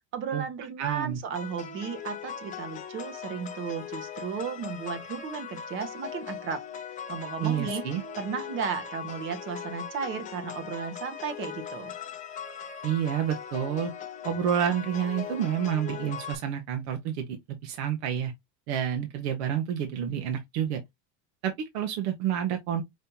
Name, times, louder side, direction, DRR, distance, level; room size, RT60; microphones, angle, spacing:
voice 1, 0.1-6.6 7.1-7.8 8.2-11.9, right 6 dB, 35° right, 1.1 m, -34 dB
voice 2, 0.8-1.2 7.4-8.0 12.8-13.9 14.2-17.4 17.6-18.3 18.7-20.8 21.4-22.8, right 9 dB, 70° right, 1.1 m, -29 dB
sound 1, 1.3-16.3, left 7 dB, 25° left, 0.7 m, -39 dB
5.5 x 3.2 x 2.8 m
cardioid pair, 160°, 34 cm